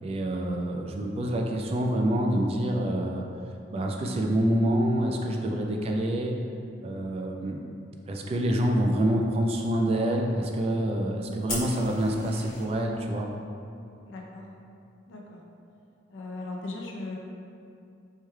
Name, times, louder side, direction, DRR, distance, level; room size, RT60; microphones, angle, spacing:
voice 1, 0.0-3.2 3.7-6.3 6.8-7.6 8.1-13.3, right 1 dB, 30° right, 1 dB, 0.3 m, -27 dB
Fire, 11.5-12.6, left 2 dB, 45° left, 1.3 m, -36 dB
voice 2, 14.1-14.5 15.1-15.4 16.1-17.2, left 2 dB, 80° left, -1 dB, 0.6 m, -38 dB
4.5 x 3.1 x 2.3 m, 2.6 s
head